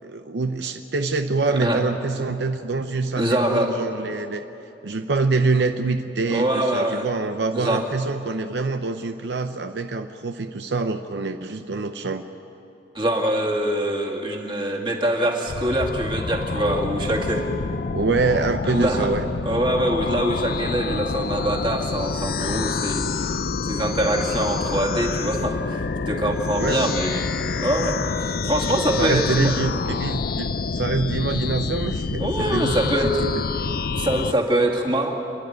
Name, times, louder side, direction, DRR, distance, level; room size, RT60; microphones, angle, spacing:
voice 1, 0.0-4.4 4.8-12.2 17.9-19.3 26.6-26.8 29.0-30.5 30.7-33.4, right 3 dB, 75° right, 7 dB, 0.7 m, -25 dB
voice 2, 1.5-1.8 3.2-3.8 6.3-7.0 7.5-7.8 12.9-17.4 18.7-19.1 19.4-23.3 23.7-27.2 27.6-27.9 28.2-29.5 32.2-33.2 33.9-35.1, right 1 dB, 30° right, 0 dB, 2.3 m, -24 dB
sound 1, 15.5-34.3, left 4 dB, 55° left, 0.5 m, -27 dB
29.5 x 11.0 x 9.2 m, 3.0 s
head